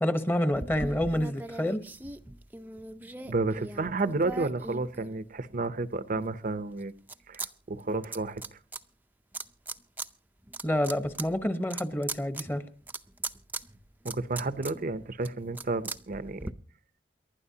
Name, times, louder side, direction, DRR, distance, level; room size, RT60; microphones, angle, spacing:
voice 1, 0.0-1.8 10.6-12.6, left 1 dB, 10° left, 1.0 m, -28 dB
sound 1, 0.5-5.6 6.1-7.5 7.8-8.8 9.3-10.1 10.4-16.5, right 2 dB, 10° right, 0.6 m, -40 dB
voice 2, 3.3-6.9 7.3-8.4 14.0-16.5, right 3 dB, 50° right, 0.7 m, -31 dB
29.0 x 12.0 x 2.8 m
head